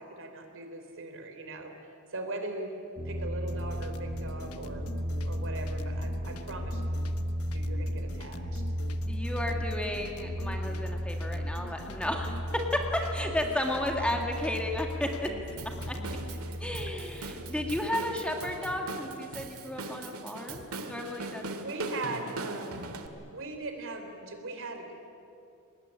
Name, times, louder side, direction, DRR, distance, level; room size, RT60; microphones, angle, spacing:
voice 1, 0.0-1.7 2.1-2.7 3.0-4.9 5.2-6.8 7.5-8.6 16.4-16.6 21.6-22.9 23.3-24.9, right 2 dB, 65° right, 5 dB, 3.4 m, -39 dB
sound 1, 3.0-17.7, equal, 35° right, 5.0 m, -35 dB
sound 2, 3.5-16.4, left 2 dB, 90° left, 1.1 m, -46 dB
voice 2, 9.1-12.4 12.7-15.3 15.9-16.0 16.6-21.4, left 1 dB, 5° left, 2 dB, 2.1 m, -33 dB
Drum kit / Drum, 15.6-23.1, right 3 dB, 80° right, 2.0 m, -41 dB
23.5 x 20.5 x 9.9 m, 2.7 s
head